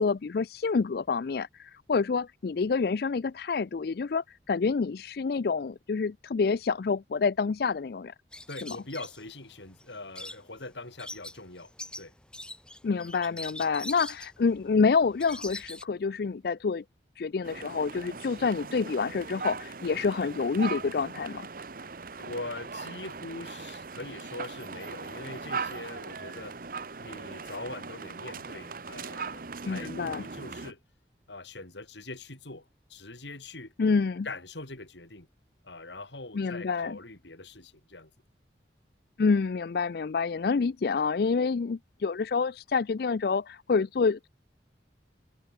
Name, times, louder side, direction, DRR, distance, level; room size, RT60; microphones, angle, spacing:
voice 1, 0.0-8.1 8.6-8.8 12.8-16.8 17.2-21.5 29.7-30.2 33.8-34.3 36.3-37.0 39.2-44.3, left 4 dB, 55° left, 0.4 m, -27 dB
sound 1, 8.3-15.8, left 1 dB, 5° left, 2.9 m, -43 dB
voice 2, 8.5-12.1 22.2-26.7 27.0-30.8 31.3-33.7 34.2-35.3 35.6-38.1, left 2 dB, 75° left, 4.5 m, -42 dB
sound 2, 17.4-30.7, right 4 dB, 50° right, 1.0 m, -39 dB
head